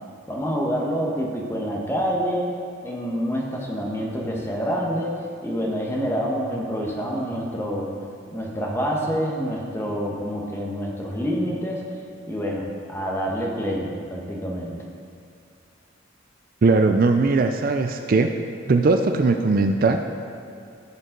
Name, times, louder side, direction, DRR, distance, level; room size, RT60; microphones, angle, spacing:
voice 1, 0.3-2.5 2.8-7.9 8.3-11.9 12.3-14.9, equal, 15° left, -2 dB, 1.2 m, -27 dB
voice 2, 16.6-18.4 18.7-20.0, right 3 dB, 45° right, 5 dB, 0.4 m, -19 dB
15.5 x 5.2 x 3.8 m, 2.4 s
head